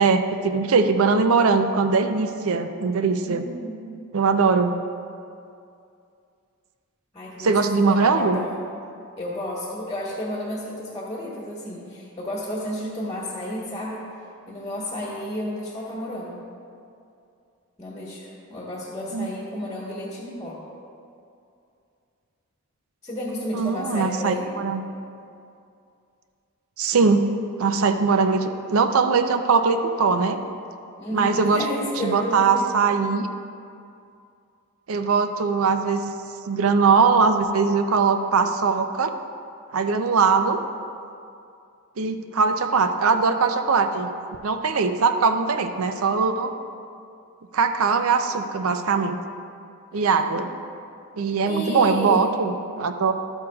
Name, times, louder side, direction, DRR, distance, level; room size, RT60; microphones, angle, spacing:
voice 1, 0.0-3.4 4.1-4.7 7.4-8.4 19.1-19.3 23.5-24.8 26.8-27.3 27.6-30.4 31.1-31.6 32.0-33.3 34.9-36.0 36.5-39.1 39.7-40.6 42.0-44.1 44.4-46.5 47.5-49.2 49.9-50.5 51.2-53.1, right 4 dB, 75° right, 8 dB, 0.5 m, -21 dB
voice 2, 3.3-4.1 7.1-8.5 9.2-14.1 14.5-16.4 17.8-20.6 23.0-24.5 31.0-32.7 49.9-50.4 51.4-52.3, left 1 dB, 15° left, -5 dB, 1.1 m, -32 dB
12.0 x 8.1 x 2.3 m, 2.5 s
head